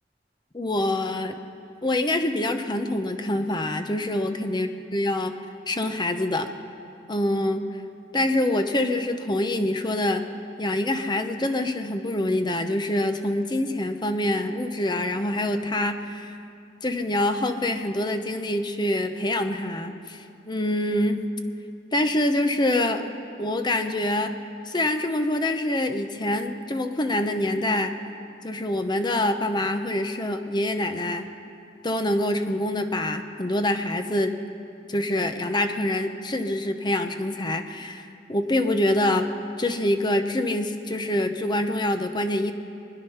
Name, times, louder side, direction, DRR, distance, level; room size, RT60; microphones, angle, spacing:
voice 1, 0.5-1.4 1.8-5.3 5.7-6.5 7.1-7.6 8.1-10.2 10.6-16.3 16.8-21.2 21.9-23.1 23.4-24.4 24.7-27.9 28.4-31.3 31.8-34.3 34.9-39.2 39.6-42.5, left 1 dB, 25° left, 7 dB, 0.9 m, -25 dB
24.5 x 9.7 x 5.7 m, 2.6 s
head